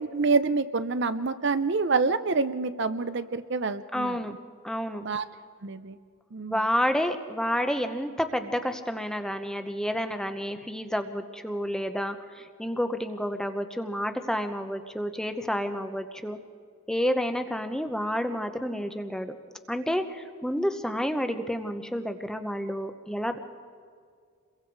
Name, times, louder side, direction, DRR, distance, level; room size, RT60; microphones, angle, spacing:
voice 1, 0.0-4.2 5.0-5.2 5.6-6.0 6.3-6.6, right 4 dB, 50° right, 12 dB, 0.6 m, -27 dB
voice 2, 3.9-4.3 4.6-5.0 6.5-16.4 16.9-19.3 19.7-23.4, equal, 5° left, 8 dB, 0.8 m, -30 dB
28.5 x 22.0 x 4.7 m, 2.1 s
head